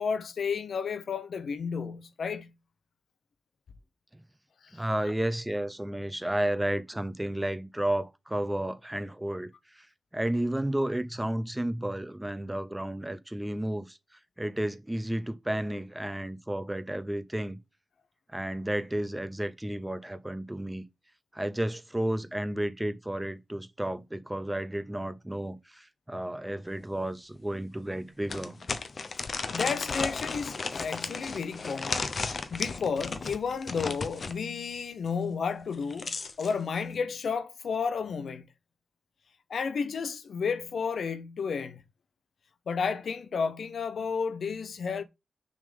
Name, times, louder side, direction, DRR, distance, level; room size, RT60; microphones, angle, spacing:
voice 1, 0.0-2.5 4.7-4.8 29.5-32.0 32.5-38.5 39.5-41.8 42.7-45.0, left 5 dB, 90° left, 0.7 m, -32 dB
voice 2, 4.7-9.9 10.1-14.0 14.4-17.6 18.3-20.8 21.3-28.6, right 1 dB, 10° right, 0.6 m, -32 dB
sound 1, 26.8-26.9 27.4-27.5 28.3-34.4 35.6-36.5, left 4 dB, 50° left, 0.7 m, -34 dB
6.5 x 3.7 x 5.2 m
wide cardioid pair, 165°, 0 cm